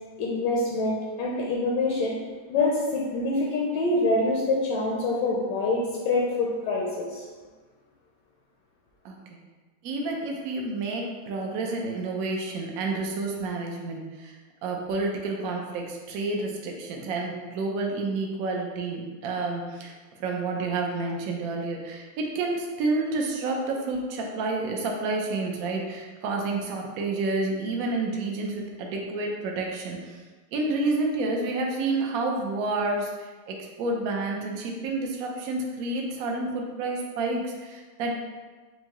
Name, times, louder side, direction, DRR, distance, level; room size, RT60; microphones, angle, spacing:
voice 1, 0.2-2.1 2.5-7.2, left 2 dB, 70° left, -3 dB, 1.1 m, -25 dB
voice 2, 9.0-9.4 9.8-14.4 14.6-19.9 20.2-30.2 30.5-38.1, right 3 dB, 85° right, 0 dB, 0.8 m, -29 dB
4.6 x 2.7 x 3.0 m, 1.3 s
omnidirectional pair, 2.2 m